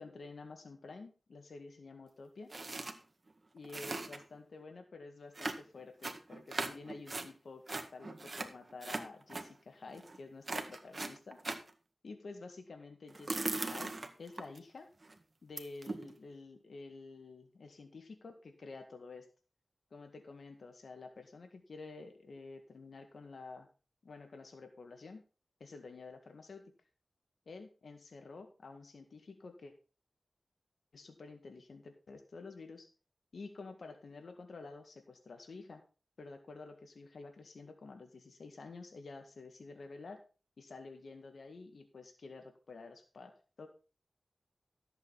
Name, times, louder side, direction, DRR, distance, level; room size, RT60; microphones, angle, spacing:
voice 1, 0.0-2.5 3.5-11.4 12.0-13.9 14.2-14.9 15.4-19.3 19.9-23.7 24.0-25.2 25.6-26.7 27.4-29.7 30.9-32.9 33.3-35.8 36.2-40.2 40.6-43.7, left 3 dB, 80° left, 6 dB, 1.8 m, -50 dB
sound 1, 2.5-2.9 3.3-3.4 3.6-4.4 5.4-7.3 7.7-9.5 9.9-10.2 10.5-11.7 13.1-14.6 15.0-15.1 15.6-16.1, right 2 dB, 45° right, 1.8 m, -39 dB
13.5 x 8.0 x 4.1 m, 0.34 s
cardioid pair, 50°, 0 cm